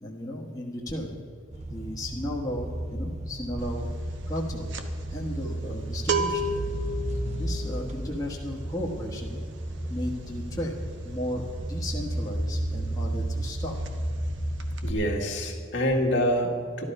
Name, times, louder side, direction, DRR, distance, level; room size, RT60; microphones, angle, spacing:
voice 1, 0.0-1.2 1.7-3.9 4.3-4.7 5.1-6.5 7.4-9.4 9.9-10.7 11.0-14.0, left 1 dB, 15° left, -3 dB, 1.3 m, -34 dB
sound 1, 1.5-15.2, right 1 dB, 35° right, 1.1 m, -33 dB
sound 2, 3.6-3.9 4.1-12.7 13.0-13.2 13.4-14.3 14.6-14.9, right 2 dB, 60° right, 1.1 m, -34 dB
voice 2, 14.8-16.8, equal, 60° left, 0 dB, 1.9 m, -26 dB
13.5 x 12.0 x 5.4 m, 2.3 s
head